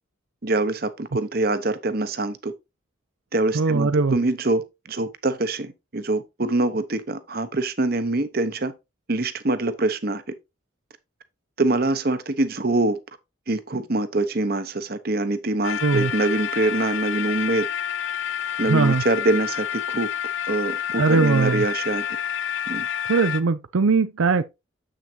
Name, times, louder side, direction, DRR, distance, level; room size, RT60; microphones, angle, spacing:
voice 1, 0.4-2.5 3.3-8.7 9.1-10.2 11.6-13.0 13.5-17.7 18.6-20.1 20.5-22.1 22.7-22.9, right 2 dB, 50° right, 0.9 m, -24 dB
voice 2, 3.5-4.2 15.8-16.1 18.7-19.0 20.9-21.6 23.1-24.4, right 4 dB, 90° right, 0.5 m, -20 dB
sound 1, 15.6-23.4, left 10 dB, 70° left, 0.6 m, -29 dB
7.7 x 6.5 x 2.8 m
head